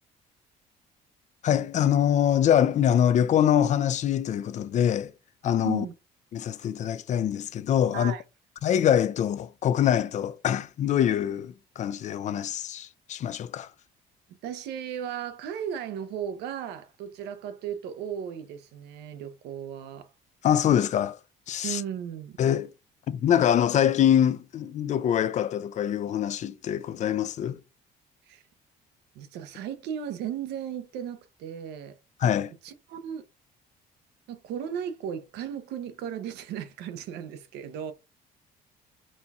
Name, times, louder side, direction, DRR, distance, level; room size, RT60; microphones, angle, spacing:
voice 1, 1.4-5.1 5.4-5.8 6.3-8.1 8.6-13.7 20.4-21.2 21.5-21.8 22.4-22.7 23.1-27.6 32.2-32.5, left 9 dB, 45° left, 0.4 m, -24 dB
voice 2, 14.4-20.1 21.6-22.4 28.3-28.4 29.1-32.0 32.6-33.2 34.3-37.9, right 9 dB, 85° right, 0.7 m, -36 dB
4.2 x 2.3 x 4.1 m
cardioid pair, 110°, 17 cm